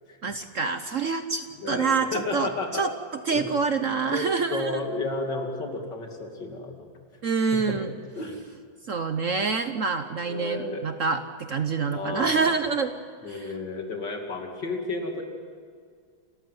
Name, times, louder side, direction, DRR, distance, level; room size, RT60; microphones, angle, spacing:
voice 1, 0.2-2.9 3.3-4.8 7.2-7.9 8.9-12.9 13.3-13.5, right 5 dB, 55° right, 9 dB, 1.0 m, -26 dB
voice 2, 1.6-2.9 3.3-3.4 4.1-6.9 7.5-7.8 8.2-8.4 10.2-10.8 11.9-12.6 13.2-15.2, left 2 dB, 65° left, 2 dB, 3.2 m, -32 dB
29.0 x 14.5 x 9.4 m, 2.1 s
omnidirectional pair, 2.0 m